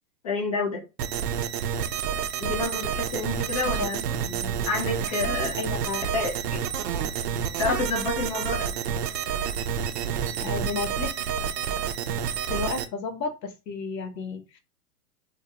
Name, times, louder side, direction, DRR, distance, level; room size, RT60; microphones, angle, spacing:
voice 1, 0.2-0.8 2.4-4.0 4.6-5.6 6.1-6.6 6.9-7.0 7.6-8.7, left 3 dB, 25° left, 1 dB, 0.3 m, -29 dB
sound 1, 1.0-12.8, right 8 dB, 80° right, 0.5 m, -29 dB
voice 2, 5.6-6.0 10.4-11.1 12.5-14.6, left 4 dB, 85° left, 6 dB, 0.8 m, -32 dB
2.3 x 2.1 x 2.8 m, 0.29 s
hypercardioid pair, 125°, 48 cm